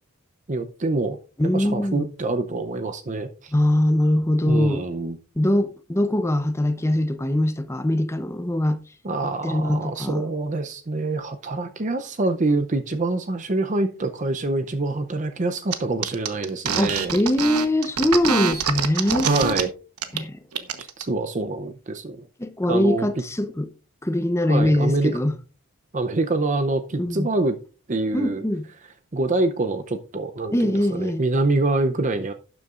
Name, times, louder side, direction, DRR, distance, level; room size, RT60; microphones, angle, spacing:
voice 1, 0.5-1.2 1.4-3.5 4.5-5.2 9.0-17.1 19.2-19.7 20.8-22.2 22.7-23.1 24.5-25.2 25.9-27.6 27.9-28.4 29.1-32.3, right 2 dB, 35° right, 0.6 m, -25 dB
voice 2, 1.4-2.1 3.5-4.8 5.4-8.8 9.4-10.2 16.8-19.3 20.1-20.4 22.4-23.7 24.0-25.3 27.0-27.3 28.1-28.7 30.5-31.2, left 1 dB, 10° left, 0.7 m, -22 dB
sound 1, 15.7-15.8 16.0-19.6 20.0-20.2 20.5-21.0, right 6 dB, 90° right, 1.1 m, -25 dB
12.0 x 9.5 x 2.5 m
head